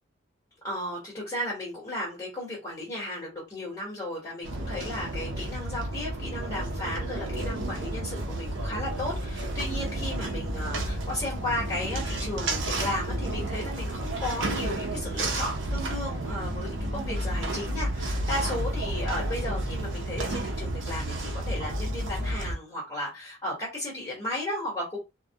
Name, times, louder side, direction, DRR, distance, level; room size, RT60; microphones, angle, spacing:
voice 1, 0.6-25.0, left 1 dB, 20° left, 1.1 m, -34 dB
sound 1, 4.4-22.6, right 1 dB, 70° right, 0.6 m, -31 dB
2.1 x 2.1 x 2.7 m
head